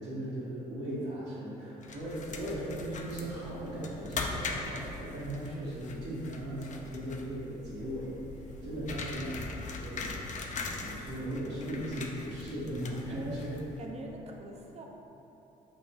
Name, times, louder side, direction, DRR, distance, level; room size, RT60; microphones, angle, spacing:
voice 1, 0.0-10.2 10.7-13.6, right 1 dB, 70° right, -12 dB, 1.2 m, -38 dB
sound 1, 1.8-13.9, left 3 dB, 40° left, 0.4 m, -41 dB
voice 2, 13.1-13.4 13.8-14.9, right 1 dB, 35° right, 0 dB, 0.5 m, -43 dB
5.3 x 2.2 x 2.7 m, 3.0 s
hypercardioid pair, 55°, 19 cm